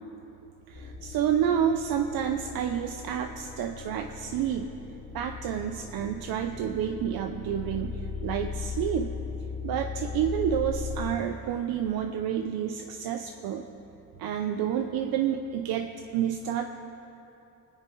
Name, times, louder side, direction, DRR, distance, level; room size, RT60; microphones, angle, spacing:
sound 1, 0.7-11.1, left 5 dB, 30° left, 3.3 m, -38 dB
voice 1, 0.7-4.7 5.1-9.1 9.6-13.7 14.2-16.6, right 9 dB, 85° right, 6 dB, 0.8 m, -29 dB
24.5 x 10.5 x 4.7 m, 2.9 s
cardioid pair, 85°, 36 cm